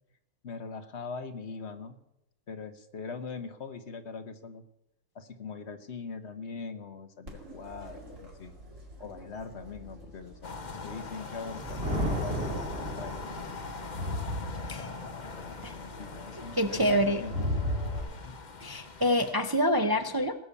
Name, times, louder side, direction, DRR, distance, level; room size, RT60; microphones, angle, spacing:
voice 1, 0.4-2.0 2.5-4.6 5.1-8.5 9.0-13.3 14.0-14.5 15.8-17.5 18.2-18.4, left 4 dB, 60° left, 9 dB, 1.3 m, -42 dB
Crowd, 7.3-18.0, left 1 dB, 80° right, 3.3 m, -39 dB
sound 1, 10.4-19.3, left 4 dB, 40° left, 1.1 m, -42 dB
Thunder, 11.3-13.8, equal, 45° right, 2.9 m, -33 dB
voice 2, 16.6-17.2 18.6-20.3, equal, 25° right, 7 dB, 0.5 m, -26 dB
18.5 x 6.9 x 8.3 m, 0.86 s
omnidirectional pair, 1.3 m